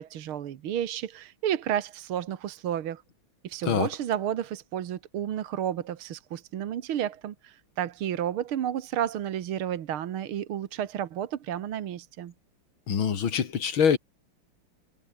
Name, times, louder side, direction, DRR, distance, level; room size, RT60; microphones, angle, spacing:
voice 1, 0.0-3.0 3.4-12.3, right 10 dB, 75° right, 2.1 m, -31 dB
voice 2, 12.9-14.0, left 7 dB, 70° left, 2.7 m, -24 dB
omnidirectional pair, 2.4 m